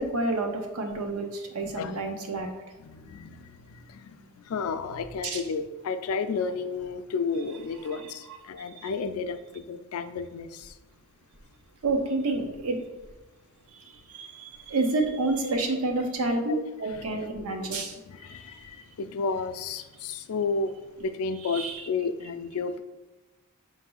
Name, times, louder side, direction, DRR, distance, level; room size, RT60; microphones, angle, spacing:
voice 1, 0.0-2.5 5.2-5.4 8.8-8.9 11.8-12.8 14.1-18.0 18.4-18.5 21.5-21.8, right 2 dB, 80° right, 4 dB, 0.7 m, -29 dB
voice 2, 1.6-1.9 2.8-10.7 15.4-15.6 16.5-16.6 17.0-17.1 18.1-22.8, left 4 dB, 70° left, 10 dB, 0.4 m, -32 dB
4.9 x 2.7 x 3.8 m, 1.2 s
head